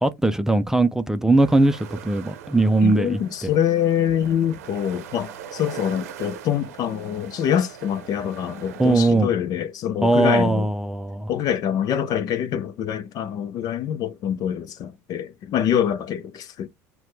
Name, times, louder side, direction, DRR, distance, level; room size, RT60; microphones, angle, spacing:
voice 1, 0.0-3.5 8.8-9.3 10.0-11.3, right 2 dB, 5° right, 0.5 m, -20 dB
sound 1, 1.3-9.1, right 8 dB, 85° right, 0.8 m, -40 dB
voice 2, 2.8-10.7 11.3-16.7, left 9 dB, 50° left, 0.7 m, -25 dB
5.6 x 2.3 x 3.2 m
hypercardioid pair, 90°, 8 cm